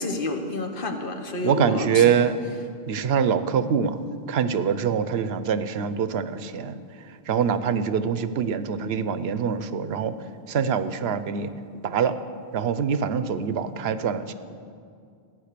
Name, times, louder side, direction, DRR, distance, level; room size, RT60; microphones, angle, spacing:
voice 1, 0.0-2.2, left 2 dB, 60° left, 5 dB, 1.3 m, -29 dB
voice 2, 1.4-2.4 2.9-6.8 7.3-10.1 10.5-11.5 11.8-12.1 12.5-14.3, right 7 dB, 80° right, 12 dB, 0.9 m, -24 dB
15.0 x 9.0 x 6.7 m, 2.3 s
omnidirectional pair, 1.0 m